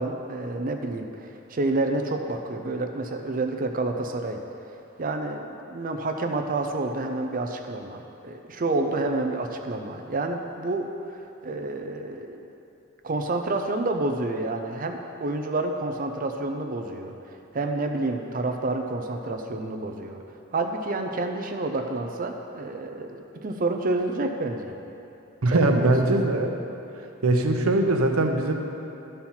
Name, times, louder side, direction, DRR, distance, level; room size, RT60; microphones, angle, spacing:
voice 1, 0.0-4.4 5.0-11.2 11.4-12.5 13.0-20.2 20.5-24.7 25.5-25.9, right 2 dB, 40° right, 4 dB, 0.5 m, -29 dB
voice 2, 25.4-26.5 27.2-28.5, right 2 dB, 80° right, 4 dB, 0.8 m, -21 dB
13.0 x 4.4 x 5.6 m, 2.8 s
head